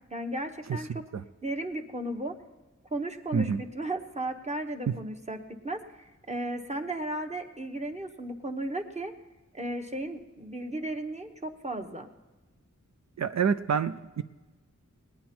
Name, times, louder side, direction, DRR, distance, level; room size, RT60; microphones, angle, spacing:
voice 1, 0.1-1.0 1.4-2.3 2.9-5.4 5.6-9.1 9.5-12.1, right 1 dB, 20° right, 4 dB, 1.1 m, -35 dB
voice 2, 13.2-14.2, right 6 dB, 60° right, 10 dB, 0.5 m, -27 dB
20.0 x 9.3 x 4.4 m, 1.2 s
wide cardioid pair, 65°, 31 cm